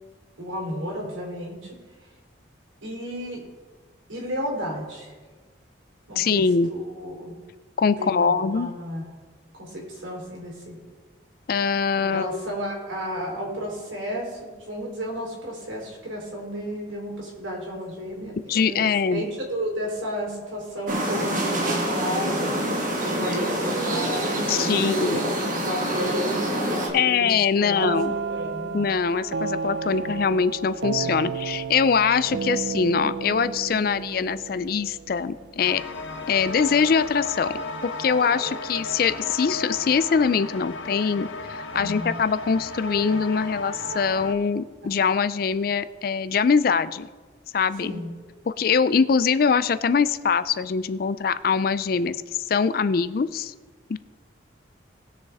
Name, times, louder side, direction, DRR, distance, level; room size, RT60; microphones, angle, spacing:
voice 1, 0.4-1.8 2.8-3.4 4.1-5.1 6.1-7.3 8.0-9.0 9.6-10.8 12.0-18.8 19.1-22.6 23.1-25.3 25.6-28.9 29.8-30.1 31.0-31.3 32.2-32.3 41.7-42.1 47.8-48.1, equal, 85° right, -3 dB, 3.7 m, -32 dB
voice 2, 6.2-6.7 7.8-8.7 11.5-12.5 18.5-19.2 24.5-25.2 26.9-28.2 28.7-35.8 36.3-37.5 37.8-47.1 47.5-47.9 48.5-52.2 52.5-53.5 53.9-54.0, left 6 dB, 50° left, 15 dB, 0.4 m, -23 dB
sound 1, 20.9-26.9, right 1 dB, 45° right, 1.7 m, -26 dB
sound 2, 27.8-35.5, right 5 dB, 70° right, 0.4 m, -32 dB
Doom Mongers Inc, 35.6-44.3, left 2 dB, 85° left, 0.8 m, -34 dB
19.5 x 6.5 x 3.5 m, 1.4 s
head